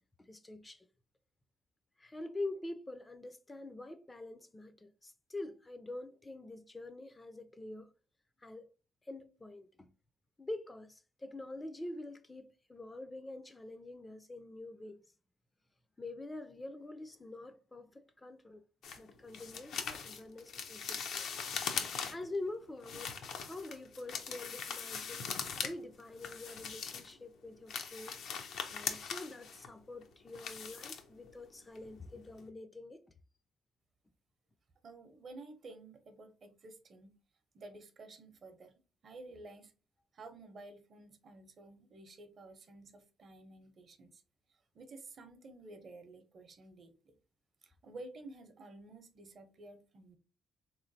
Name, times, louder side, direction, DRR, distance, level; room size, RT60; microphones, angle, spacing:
voice 1, 0.2-0.9 2.0-7.9 8.4-8.7 9.0-9.9 10.4-15.0 16.0-18.6 19.0-21.3 22.1-25.3 25.6-28.2 28.7-33.0, left 2 dB, 20° left, 0.4 m, -45 dB
sound 1, 18.8-22.4 22.8-25.7 26.0-27.2 27.5-31.5 31.8-32.0 32.4-32.5, left 6 dB, 75° left, 0.5 m, -41 dB
voice 2, 34.8-37.2 37.5-39.7 40.1-44.2 44.7-47.1 47.6-50.2, right 2 dB, 50° right, 0.7 m, -52 dB
3.5 x 3.0 x 2.6 m
cardioid pair, 90°, 0 cm